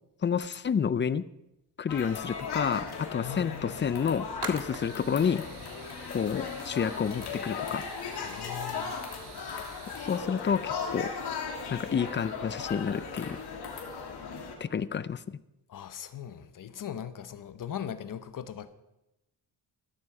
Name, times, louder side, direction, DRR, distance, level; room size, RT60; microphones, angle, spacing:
voice 1, 0.2-1.2 1.8-5.4 6.1-7.8 10.0-11.1 11.7-13.4 14.6-15.4, left 7 dB, 30° left, 17 dB, 0.5 m, -29 dB
sound 1, 1.9-14.6, left 5 dB, 70° left, 2.9 m, -37 dB
voice 2, 3.2-3.8 8.2-9.0 15.7-18.7, left 9 dB, 50° left, 12 dB, 1.1 m, -39 dB
sound 2, 3.5-3.6 4.0-10.2, right 7 dB, 75° right, 1.8 m, -47 dB
14.5 x 13.5 x 4.8 m, 0.91 s
cardioid pair, 110°, 40 cm